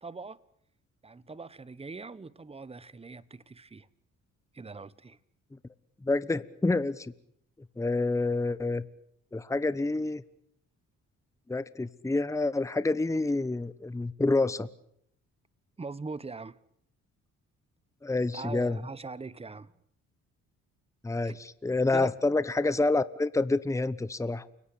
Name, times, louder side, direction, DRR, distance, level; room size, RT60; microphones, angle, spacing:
voice 1, 0.0-0.4 1.0-3.9 4.5-5.2 15.8-16.6 18.3-19.7 21.2-21.3 21.9-22.1, right 4 dB, 20° right, 1.2 m, -41 dB
voice 2, 6.0-7.1 7.8-8.8 9.3-10.2 11.5-14.7 18.0-18.8 21.0-24.5, left 2 dB, 10° left, 1.0 m, -28 dB
29.5 x 17.5 x 8.6 m
cardioid pair, 90°, 30 cm